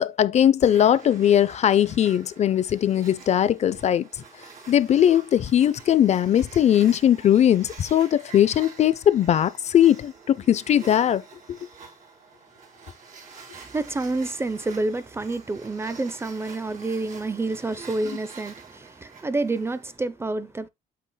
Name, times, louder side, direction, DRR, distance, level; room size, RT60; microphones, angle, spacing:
voice 1, 0.0-4.1 4.7-11.2 11.5-11.6, left 10 dB, 40° left, 0.4 m, -20 dB
sound 1, 0.6-20.0, right 5 dB, 50° right, 3.1 m, -47 dB
voice 2, 13.5-20.7, right 2 dB, 15° right, 0.5 m, -28 dB
8.4 x 7.0 x 2.2 m
cardioid pair, 110°, 17 cm